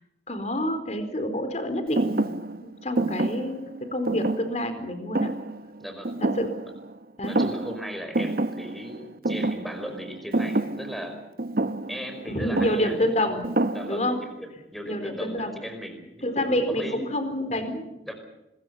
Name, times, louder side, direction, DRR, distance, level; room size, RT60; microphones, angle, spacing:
voice 1, 0.3-5.3 6.2-6.5 7.2-7.4 12.3-13.4 13.9-14.2 14.8-15.5 16.2-17.9, left 1 dB, 40° left, 8 dB, 4.2 m, -28 dB
Thump thud, 2.0-7.0 7.2-7.9 8.1-14.3, right 2 dB, 55° right, 0.9 m, -29 dB
voice 2, 5.8-6.2 7.2-11.2 11.6-13.0 13.7-16.2 16.7-17.0 18.1-18.2, equal, ahead, 6 dB, 5.1 m, -37 dB
26.0 x 22.0 x 5.7 m, 0.96 s
head